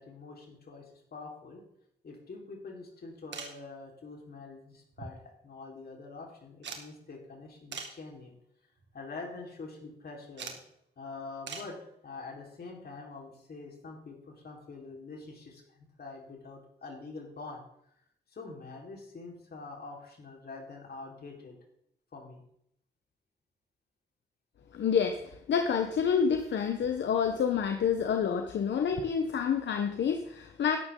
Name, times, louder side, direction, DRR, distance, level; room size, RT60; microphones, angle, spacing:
voice 1, 0.0-1.6 2.0-8.3 8.9-10.6 11.0-17.6 18.3-21.6 22.1-22.4, left 3 dB, 60° left, -1 dB, 4.4 m, -45 dB
sound 1, 3.3-3.6 4.9-5.5 5.8-5.9 6.6-6.9 7.7-8.0 8.7-9.0 10.4-10.6 11.5-11.8 13.4-13.5 14.9-15.0 15.2-15.3, right 5 dB, 80° right, 2.0 m, -42 dB
voice 2, 24.7-30.8, left 7 dB, 80° left, 6 dB, 1.0 m, -28 dB
13.0 x 11.5 x 3.9 m, 0.72 s
cardioid pair, 65°, 18 cm